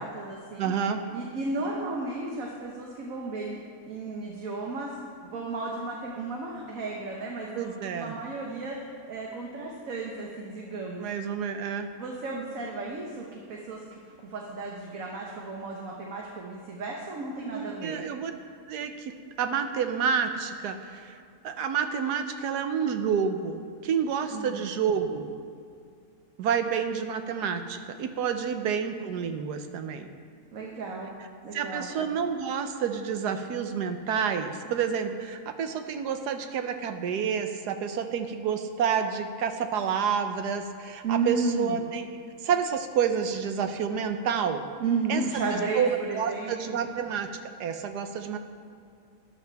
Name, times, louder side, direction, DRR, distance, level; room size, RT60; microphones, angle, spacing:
voice 1, 0.0-0.7 1.1-11.0 11.9-18.0 24.3-24.6 30.5-31.1 31.4-31.9 41.0-41.8 44.8-46.8, right 3 dB, 60° right, -2 dB, 1.5 m, -34 dB
voice 2, 0.6-1.0 7.5-8.1 11.0-11.9 17.4-18.3 18.7-19.1 19.4-21.2 21.4-25.3 26.4-30.1 31.5-42.1 42.4-44.7 45.1-45.2 45.7-47.3 47.6-48.4, right 7 dB, 85° right, 7 dB, 1.3 m, -29 dB
13.0 x 11.0 x 3.5 m, 2.3 s
omnidirectional pair, 1.7 m